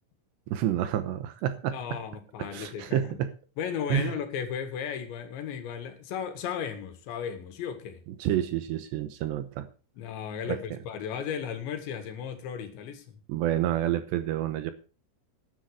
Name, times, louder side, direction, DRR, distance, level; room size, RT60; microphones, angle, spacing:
voice 1, 0.5-1.8 2.4-3.3 3.9-4.1 8.2-9.7 10.5-10.6 13.3-14.7, right 12 dB, 75° right, 2.9 m, -29 dB
voice 2, 1.7-3.2 3.6-8.0 10.0-13.2, left 8 dB, 70° left, 3.9 m, -35 dB
12.0 x 10.0 x 4.9 m
omnidirectional pair, 5.5 m